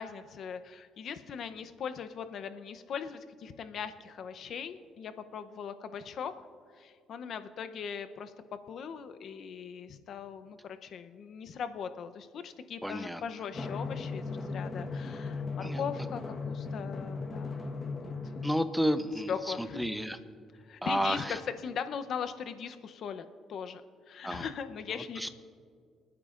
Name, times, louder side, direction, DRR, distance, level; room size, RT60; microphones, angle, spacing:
voice 1, 0.0-6.3 6.7-8.3 8.7-17.6 17.8-18.4 19.3-19.9 20.6-23.8 24.1-25.3, left 7 dB, 65° left, 9 dB, 0.7 m, -40 dB
voice 2, 12.8-13.2 15.6-15.8 18.4-20.2 20.8-21.4 24.2-24.5 25.2-25.3, equal, ahead, 10 dB, 0.8 m, -31 dB
Drum, 13.5-18.6, left 4 dB, 30° left, 1.3 m, -37 dB
28.0 x 9.5 x 2.5 m, 2.1 s
cardioid pair, 90°, 0 cm